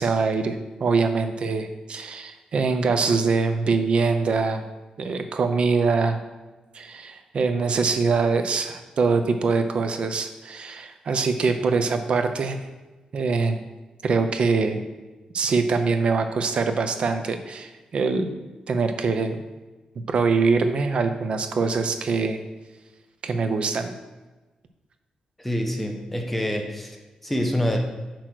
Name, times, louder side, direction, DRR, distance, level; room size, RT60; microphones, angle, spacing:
voice 1, 0.0-4.6 5.0-6.2 6.7-12.6 13.1-13.6 14.0-14.8 15.3-18.3 18.7-19.4 20.1-22.4 23.2-23.9, right 4 dB, 50° right, 8 dB, 0.7 m, -23 dB
voice 2, 25.4-27.8, equal, 5° left, 2 dB, 0.9 m, -26 dB
8.6 x 3.1 x 6.1 m, 1.2 s
wide cardioid pair, 140°, 2 cm